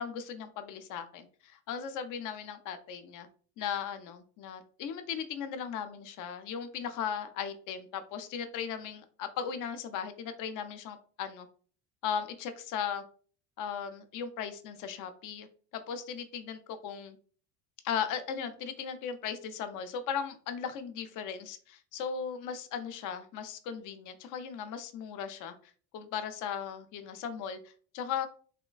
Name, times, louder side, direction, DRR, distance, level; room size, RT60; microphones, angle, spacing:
voice 1, 0.0-3.3 3.6-11.5 12.0-13.0 13.6-15.5 15.7-17.2 17.8-25.5 25.9-28.3, left 7 dB, 40° left, 9 dB, 0.5 m, -37 dB
3.2 x 2.1 x 2.3 m, 0.43 s
hypercardioid pair, 70°, 49 cm